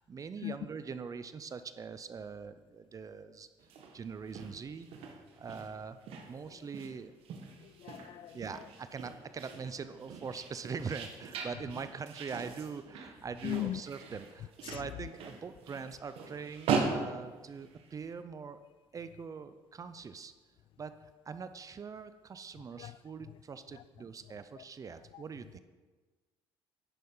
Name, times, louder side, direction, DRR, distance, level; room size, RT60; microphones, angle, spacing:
voice 1, 0.0-3.5 3.9-6.0 6.3-7.1 8.3-18.6 18.9-20.3 20.8-20.9 21.3-25.6, right 5 dB, 35° right, 0.6 m, -43 dB
sound 1, 3.6-18.1, right 5 dB, 70° right, 1.5 m, -40 dB
voice 2, 7.8-8.4 13.4-13.8 14.7-14.8 22.8-23.0 25.1-25.2, left 14 dB, 60° left, 0.4 m, -37 dB
10.5 x 6.5 x 5.5 m
supercardioid pair, 80°, 10 cm